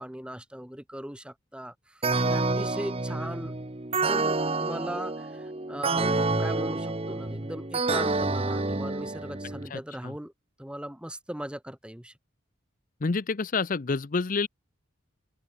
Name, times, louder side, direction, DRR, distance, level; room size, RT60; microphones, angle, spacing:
voice 1, 0.0-3.5 3.9-10.3 10.6-12.1, equal, 5° right, 1.4 m, -39 dB
sound 1, 2.0-9.7, right 3 dB, 30° right, 1.2 m, -28 dB
voice 2, 9.7-10.1 13.0-14.5, left 4 dB, 40° left, 0.6 m, -28 dB
open air
head